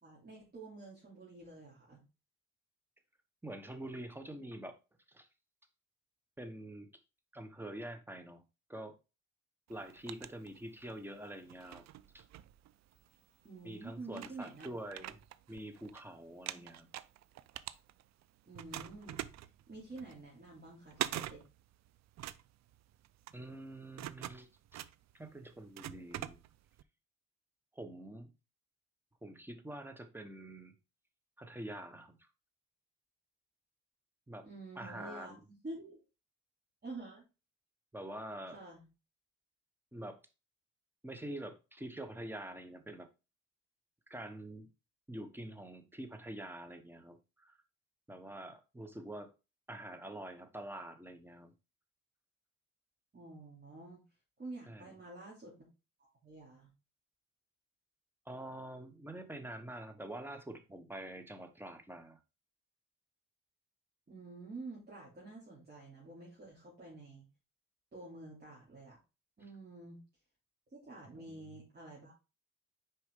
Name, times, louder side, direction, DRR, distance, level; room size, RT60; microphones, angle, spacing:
voice 1, 0.0-2.0 13.4-14.7 16.4-16.6 18.5-19.2 19.7-21.4 34.4-36.0 36.8-37.3 38.5-38.8 53.1-54.0 54.4-55.5 56.2-56.7 64.1-67.3 67.9-69.0 69.4-70.0 70.7-72.1, right 2 dB, 30° right, -5 dB, 2.8 m, -49 dB
voice 2, 3.4-4.8 5.1-5.3 6.4-6.9 7.3-8.4 8.7-9.0 9.7-11.8 12.1-12.2 13.6-15.2 15.5-16.9 23.3-24.8 25.1-26.4 27.7-28.3 29.2-30.8 31.4-32.3 34.3-34.5 34.7-35.3 37.9-38.6 39.9-40.2 41.0-43.1 44.1-44.7 45.1-47.6 48.1-49.3 49.7-51.5 54.7-54.9 58.2-62.2 71.0-71.5, right 1 dB, 5° right, 7 dB, 1.2 m, -46 dB
sound 1, 9.7-11.0 11.5-13.1 13.7-13.8 14.1-16.0 16.3-18.2 18.5-26.8, right 12 dB, 60° right, 0.5 m, -44 dB
6.3 x 4.7 x 3.7 m, 0.28 s
cardioid pair, 90°, 30 cm